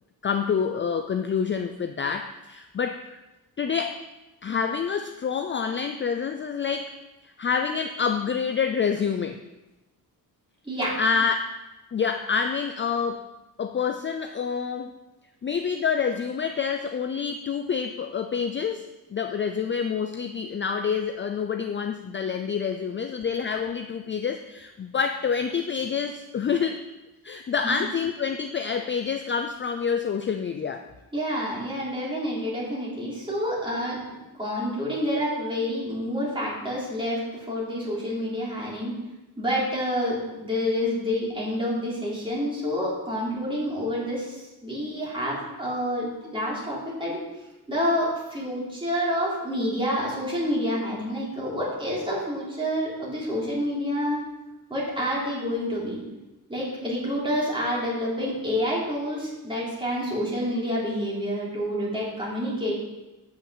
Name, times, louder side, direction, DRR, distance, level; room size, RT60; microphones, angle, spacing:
voice 1, 0.2-3.2 3.6-4.0 4.4-6.9 7.2-9.4 11.0-11.4 11.9-13.3 13.6-14.9 15.4-26.8 27.2-30.8, left 6 dB, 35° left, 7 dB, 0.4 m, -27 dB
voice 2, 10.6-11.0 31.1-34.0 34.3-38.9 39.4-47.2 47.7-54.2 54.7-56.0 56.5-62.7, equal, 15° right, -6 dB, 3.7 m, -28 dB
8.7 x 5.9 x 7.7 m, 1.0 s
wide cardioid pair, 175°, 36 cm